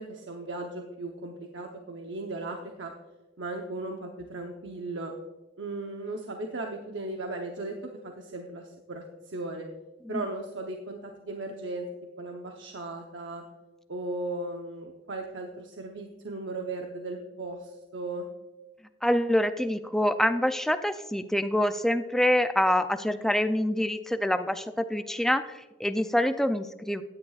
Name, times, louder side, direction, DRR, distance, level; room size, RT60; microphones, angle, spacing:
voice 1, 0.0-2.9 3.4-5.1 5.6-9.7 10.1-11.9 12.2-13.4 13.9-18.3, right 2 dB, 90° right, 2 dB, 0.9 m, -37 dB
voice 2, 19.0-27.0, left 1 dB, ahead, 9 dB, 0.4 m, -26 dB
16.0 x 9.9 x 2.4 m, 1.1 s
head